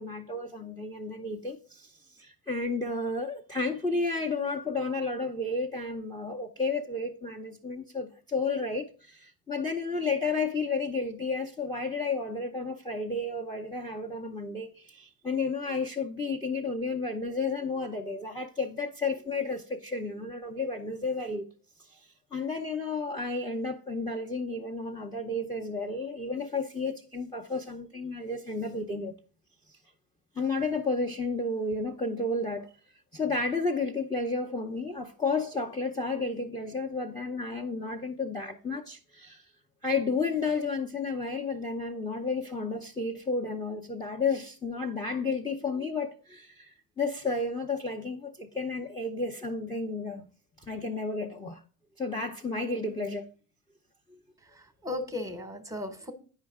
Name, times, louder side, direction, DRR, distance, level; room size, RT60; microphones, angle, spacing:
voice 1, 0.0-21.5 21.9-29.1 30.3-32.7 33.1-39.4 39.8-50.3 50.6-51.6 52.0-53.3 54.1-54.2, left 3 dB, 10° left, 0.6 m, -32 dB
voice 2, 54.4-56.1, left 2 dB, 10° right, 0.9 m, -36 dB
8.9 x 5.5 x 3.5 m
supercardioid pair, 105°, 42 cm